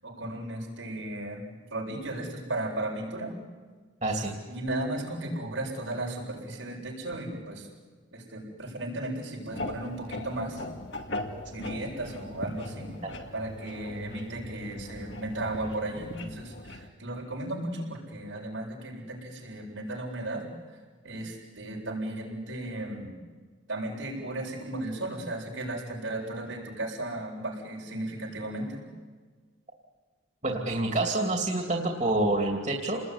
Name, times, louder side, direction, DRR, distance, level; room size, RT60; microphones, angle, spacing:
voice 1, 0.0-3.3 4.5-7.7 8.1-10.6 11.4-12.9 13.3-20.4 21.0-23.2 23.7-28.8, right 1 dB, 85° right, -2 dB, 7.4 m, -35 dB
voice 2, 4.0-4.4 30.4-33.0, right 2 dB, 35° right, 1 dB, 2.9 m, -27 dB
sound 1, 9.5-16.9, left 1 dB, 65° left, 2.5 m, -39 dB
29.0 x 20.0 x 9.7 m, 1.5 s
head